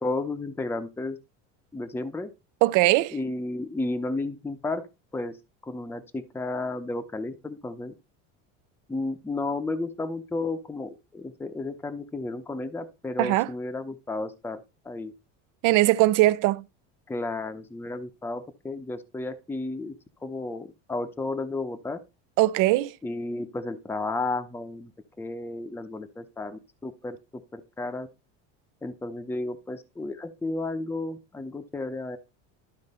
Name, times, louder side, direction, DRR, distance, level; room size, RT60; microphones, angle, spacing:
voice 1, 0.0-1.2 1.7-2.3 3.1-4.9 5.1-5.4 5.6-7.9 8.9-15.1 17.1-22.0 23.0-24.9 25.2-28.1 28.8-32.2, left 2 dB, 5° left, 0.7 m, -33 dB
voice 2, 2.6-3.1 13.2-13.5 15.6-16.6 22.4-22.9, right 18 dB, 60° right, 0.8 m, -20 dB
12.0 x 4.0 x 5.5 m
cardioid pair, 135°, 36 cm